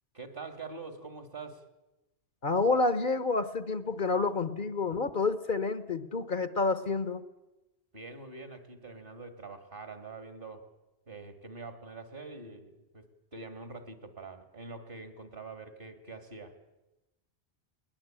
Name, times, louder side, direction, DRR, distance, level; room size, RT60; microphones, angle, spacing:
voice 1, 0.1-1.7 7.9-10.7 11.1-16.6, right 3 dB, 55° right, 9 dB, 2.5 m, -45 dB
voice 2, 2.4-7.2, left 3 dB, 50° left, 14 dB, 1.1 m, -29 dB
20.5 x 20.5 x 8.8 m, 1.0 s
omnidirectional pair, 1.1 m